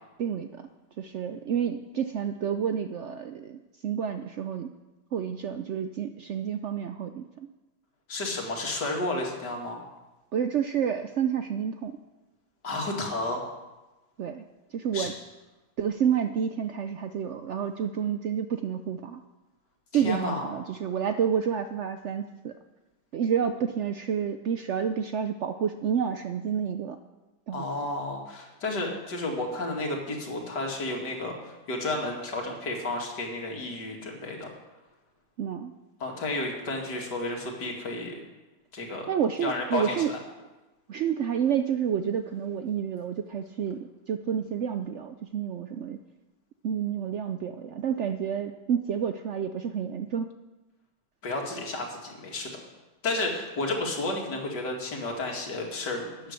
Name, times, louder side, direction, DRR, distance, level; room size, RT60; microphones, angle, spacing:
voice 1, 0.2-0.7 1.0-4.7 5.1-7.5 10.3-12.0 14.2-14.4 14.7-15.1 15.8-19.2 19.9-22.5 23.1-27.0 27.5-27.7 35.4-35.7 39.1-40.1 40.9-46.0 46.6-50.4, right 8 dB, 70° right, 8 dB, 0.7 m, -29 dB
voice 2, 8.1-9.8 12.6-13.4 14.9-15.1 19.9-20.5 27.5-34.5 36.0-38.1 38.7-39.1 39.4-40.2 51.2-52.5 53.0-56.3, left 2 dB, 85° left, 0 dB, 2.8 m, -32 dB
12.5 x 9.6 x 6.6 m, 1.1 s
omnidirectional pair, 1.8 m